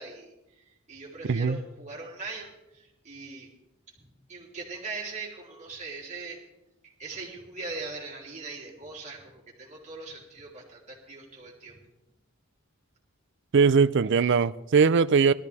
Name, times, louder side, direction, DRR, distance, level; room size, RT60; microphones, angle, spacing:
voice 1, 0.0-3.5 4.0-6.4 6.8-11.8, right 3 dB, 35° right, 3.4 m, -41 dB
voice 2, 1.3-1.6 13.5-15.3, right 5 dB, 60° right, 0.4 m, -20 dB
18.5 x 13.5 x 3.5 m
head